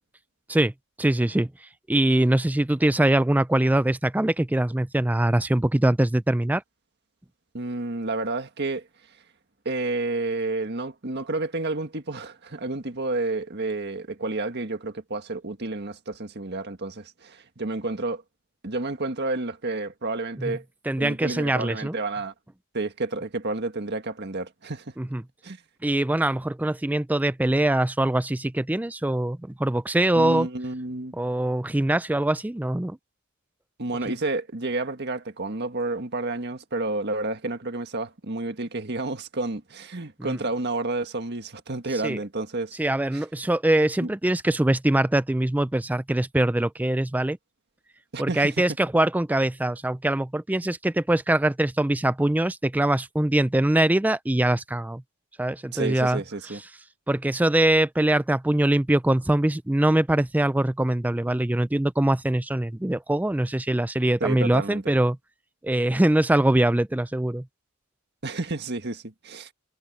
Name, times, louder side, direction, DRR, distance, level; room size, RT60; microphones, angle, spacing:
voice 1, 1.0-1.5 1.9-6.6 20.4-20.6 20.9-22.0 25.0-25.2 25.8-30.5 31.2-33.0 40.2-40.4 42.0-42.2 42.8-47.4 48.2-55.0 55.4-56.2 57.1-65.2 65.6-67.4, right 1 dB, 5° right, 0.3 m, -23 dB
voice 2, 7.5-8.9 9.7-18.2 18.6-20.6 21.0-22.3 22.7-24.9 25.4-25.6 30.2-31.1 33.8-42.8 43.1-43.2 44.0-44.1 48.1-48.5 55.7-56.6 64.2-64.8 68.2-69.5, right 2 dB, 50° right, 1.8 m, -30 dB
head